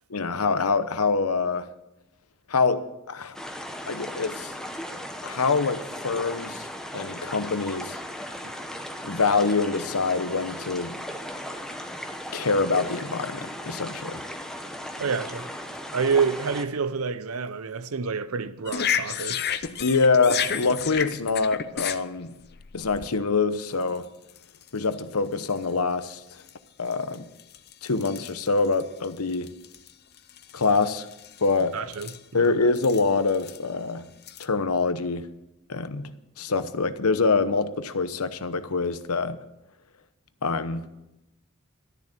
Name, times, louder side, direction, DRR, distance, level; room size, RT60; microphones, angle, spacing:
voice 1, 0.1-1.7 2.5-3.4 3.9-4.5 5.2-6.6 6.9-8.0 9.0-11.0 12.3-14.2 19.8-22.4 22.7-24.1 24.7-26.4 26.8-27.3 27.8-29.5 30.5-31.1 31.4-31.8 32.3-34.1 34.4-35.3 35.7-39.4 40.4-40.9, left 4 dB, 85° left, 0.9 m, -25 dB
sound 1, 3.3-16.7, equal, 5° left, 1.0 m, -37 dB
voice 2, 15.0-15.5 15.9-19.4 31.6-32.6, right 5 dB, 75° right, 0.7 m, -28 dB
sound 2, 18.7-23.1 23.8-24.0 24.3-24.7 25.4-25.6 26.5-26.6 26.9-29.9 30.2-31.6 31.9-32.2 32.8-33.6 34.2-34.5, left 8 dB, 50° left, 0.7 m, -32 dB
12.5 x 10.5 x 6.7 m
head